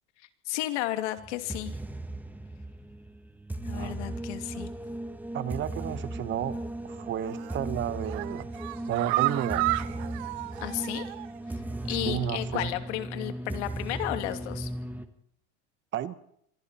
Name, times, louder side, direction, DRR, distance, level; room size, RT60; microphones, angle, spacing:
voice 1, 0.2-1.7 3.6-4.7 10.6-11.0 11.9-14.7, left 15 dB, 90° left, 8 dB, 2.6 m, -33 dB
sound 1, 1.2-15.0, right 1 dB, 5° right, 1.4 m, -36 dB
voice 2, 5.3-6.6 6.8-8.5 8.9-9.7 12.1-12.7 15.9-16.1, right 11 dB, 35° right, 13 dB, 1.2 m, -32 dB
sound 2, 7.2-7.6 8.0-11.4 11.7-11.8 12.2-12.3, right 20 dB, 65° right, 0.9 m, -32 dB
27.0 x 24.0 x 4.4 m, 0.71 s
cardioid pair, 155°, 34 cm